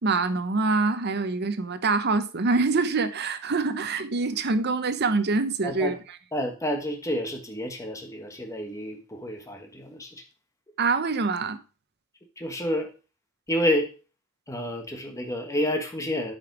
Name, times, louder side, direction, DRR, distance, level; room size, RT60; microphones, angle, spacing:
voice 1, 0.0-6.0 10.8-11.6, right 3 dB, 55° right, 0.8 m, -25 dB
voice 2, 5.6-6.0 6.3-10.2 12.4-12.9 13.5-13.9 14.5-16.4, equal, 15° left, 1.4 m, -29 dB
8.6 x 5.3 x 4.7 m
head